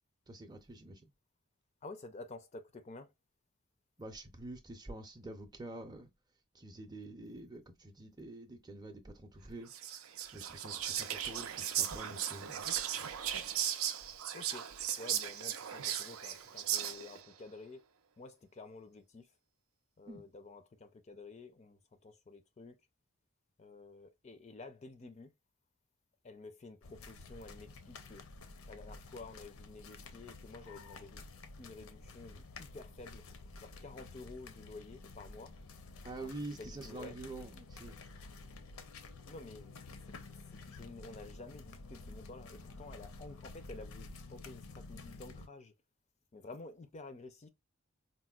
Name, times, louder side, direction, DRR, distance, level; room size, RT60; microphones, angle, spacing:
voice 1, 0.3-1.1 4.0-6.1 6.5-9.7 10.3-12.7 12.9-13.1 20.1-20.2 36.0-38.0, right 2 dB, 20° right, 0.5 m, -47 dB
voice 2, 1.8-3.1 14.3-14.7 15.0-17.8 18.2-19.3 20.0-22.8 23.6-25.3 26.2-28.2 28.7-31.2 31.6-33.3 33.6-35.5 36.2-37.2 39.3-45.7 46.3-47.5, left 3 dB, 30° left, 0.4 m, -51 dB
Whispering, 9.7-17.2, right 10 dB, 80° right, 0.5 m, -37 dB
sound 1, 26.8-45.5, left 3 dB, 80° left, 0.6 m, -51 dB
4.1 x 2.1 x 2.3 m
head